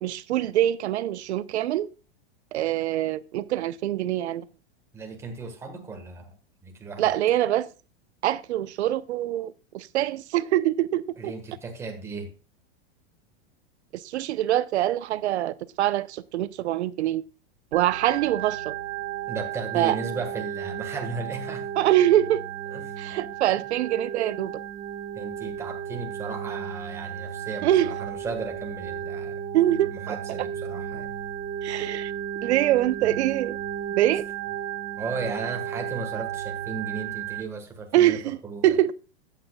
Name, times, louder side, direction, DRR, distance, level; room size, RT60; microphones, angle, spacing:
voice 1, 0.0-1.9 2.5-4.4 7.0-7.7 8.2-11.3 13.9-17.2 17.7-18.7 19.7-20.0 21.8-22.4 23.0-24.5 27.6-27.9 29.5-29.9 31.6-32.1 32.4-33.6 33.9-34.2 37.9-38.4 38.6-38.9, right 13 dB, 85° right, 0.8 m, -24 dB
voice 2, 4.9-6.3 6.6-7.0 11.2-12.3 19.3-21.7 22.7-22.8 25.1-29.4 29.9-31.1 35.0-38.2 38.4-38.8, right 4 dB, 10° right, 1.4 m, -35 dB
Organ, 17.7-37.4, right 9 dB, 30° right, 1.3 m, -34 dB
13.0 x 8.6 x 2.3 m
supercardioid pair, 175°, 33 cm